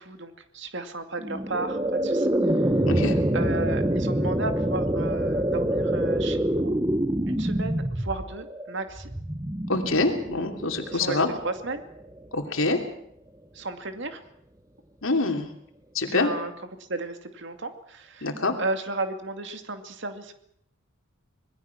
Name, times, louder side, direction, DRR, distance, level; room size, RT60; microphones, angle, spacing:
voice 1, 0.0-2.3 2.6-2.7 3.3-6.8 7.3-9.1 10.9-11.2 11.4-11.8 13.5-14.2 16.1-16.5 16.9-18.3 18.6-20.3, right 2 dB, 60° right, 7 dB, 2.4 m, -34 dB
sound 1, 1.2-12.3, right 1 dB, 15° right, 1.0 m, -26 dB
voice 2, 2.8-3.2 9.7-11.3 12.3-12.8 15.0-15.5 15.9-16.3 18.2-18.5, left 3 dB, 75° left, 4 dB, 3.0 m, -25 dB
26.0 x 20.5 x 6.0 m, 0.72 s
head